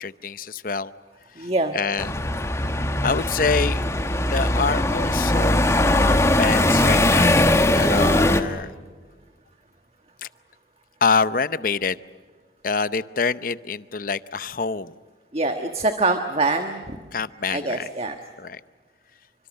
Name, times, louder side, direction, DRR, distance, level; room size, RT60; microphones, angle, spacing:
voice 1, 0.0-0.9 1.4-1.5 1.7-2.1 3.0-3.8 4.3-5.7 5.9-7.4 7.7-8.7 11.0-12.0 12.6-14.9 17.1-17.9 18.4-18.6, left 5 dB, 50° left, 15 dB, 0.7 m, -26 dB
voice 2, 1.4-1.7 15.3-17.0 17.5-18.2, right 2 dB, 35° right, 6 dB, 1.4 m, -24 dB
sound 1, 2.0-8.4, left 1 dB, 15° left, 1.3 m, -20 dB
28.0 x 25.0 x 6.5 m, 1.5 s
head